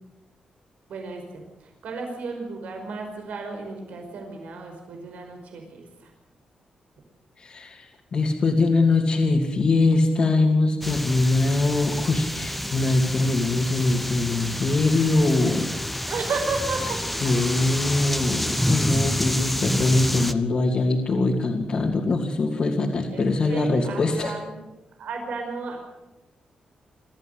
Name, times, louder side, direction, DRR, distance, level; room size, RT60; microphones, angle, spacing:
voice 1, 0.9-6.1 16.1-17.0 23.1-24.6 25.0-25.8, right 4 dB, 85° right, 3 dB, 5.2 m, -33 dB
voice 2, 7.4-15.7 17.2-24.3, left 3 dB, 45° left, -2 dB, 2.9 m, -22 dB
sound 1, 10.8-20.3, equal, 5° left, 1.1 m, -28 dB
26.0 x 14.5 x 8.1 m, 1.0 s
wide cardioid pair, 140°, 2 cm